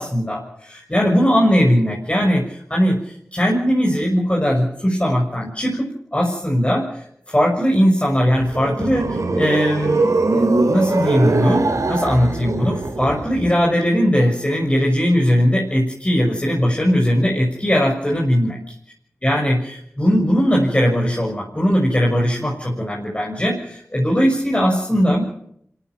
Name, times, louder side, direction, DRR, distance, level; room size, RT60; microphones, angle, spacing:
voice 1, 0.0-10.1 10.6-18.6 19.2-25.3, equal, 25° left, -2 dB, 6.7 m, -19 dB
sound 1, 8.2-13.5, right 3 dB, 75° right, 3.3 m, -21 dB
25.5 x 15.0 x 9.4 m, 0.70 s
cardioid pair, 40°, 6 cm